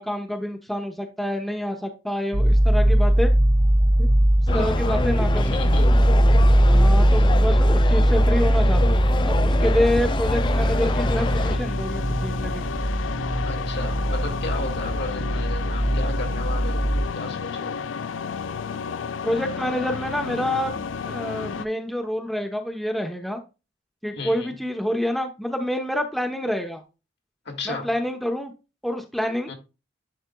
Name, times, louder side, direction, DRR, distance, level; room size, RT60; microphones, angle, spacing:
voice 1, 0.0-3.3 4.0-4.1 4.5-5.6 6.6-12.6 19.2-23.4 24.0-26.8 27.7-28.5 28.8-29.5, left 1 dB, ahead, 0.8 m, -27 dB
sound 1, 2.3-17.1, right 1 dB, 30° right, 0.8 m, -20 dB
voice 2, 4.5-5.1 5.3-6.0 7.2-7.3 13.4-17.8 24.1-24.6 27.5-27.9 29.5-29.6, left 3 dB, 60° left, 1.9 m, -34 dB
sound 2, 4.5-11.6, left 3 dB, 25° left, 0.3 m, -27 dB
sound 3, 9.1-21.7, left 6 dB, 90° left, 0.4 m, -32 dB
10.5 x 4.3 x 2.2 m
head